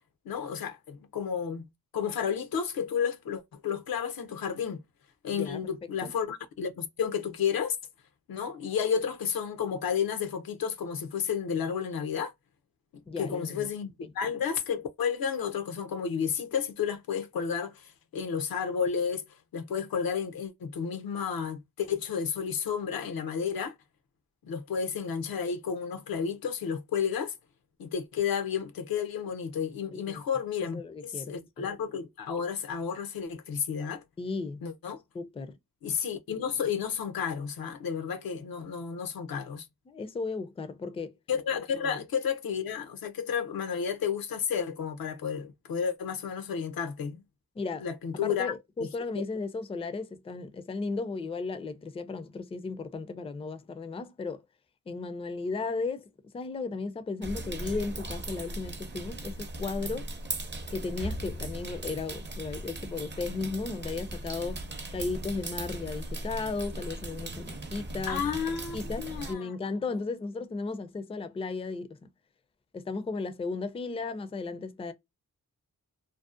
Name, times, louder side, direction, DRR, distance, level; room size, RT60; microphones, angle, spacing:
voice 1, 0.3-1.6 1.9-4.8 5.2-7.8 8.3-12.3 13.2-19.3 19.5-23.7 24.4-27.3 27.8-34.0 34.6-35.0 35.8-39.7 41.3-47.2 47.8-48.5 48.8-48.9 68.1-69.5, left 7 dB, 85° left, 0.6 m, -32 dB
voice 2, 13.1-13.7 14.0-14.1 29.9-30.2 30.7-31.7 34.2-34.6 35.1-35.6 39.9-41.1 41.8-42.0 47.6-47.8 48.1-54.4 54.9-56.0 56.3-60.1 60.7-64.6 64.9-71.9 72.7-74.9, left 4 dB, 15° left, 0.3 m, -35 dB
sound 1, 57.2-69.3, right 1 dB, 30° right, 0.5 m, -38 dB
2.6 x 2.0 x 2.4 m
cardioid pair, 65°, 35 cm